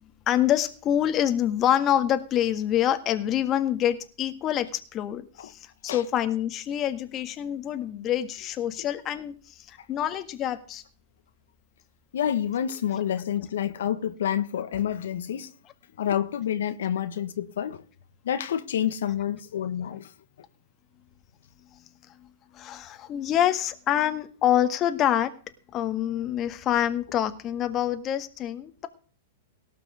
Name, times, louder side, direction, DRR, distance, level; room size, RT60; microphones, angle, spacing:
voice 1, 0.3-10.8 22.5-25.3 25.7-28.9, left 11 dB, 35° left, 1.7 m, -26 dB
voice 2, 12.1-15.5 16.0-17.8 18.2-20.1, left 10 dB, 80° left, 1.5 m, -28 dB
18.0 x 6.0 x 7.4 m
hypercardioid pair, 120°, 0 cm